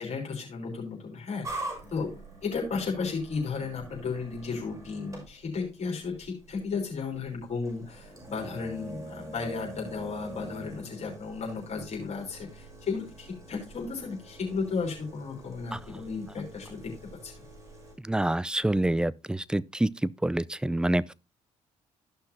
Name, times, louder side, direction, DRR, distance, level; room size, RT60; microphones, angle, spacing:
voice 1, 0.0-2.1 2.4-16.9 17.2-17.3, left 4 dB, 50° left, 3.4 m, -34 dB
sound 1, 1.4-17.9, right 2 dB, 25° right, 5.9 m, -45 dB
voice 2, 18.0-21.1, right 1 dB, 5° right, 0.4 m, -27 dB
14.0 x 5.8 x 2.7 m
hypercardioid pair, 50°, 14 cm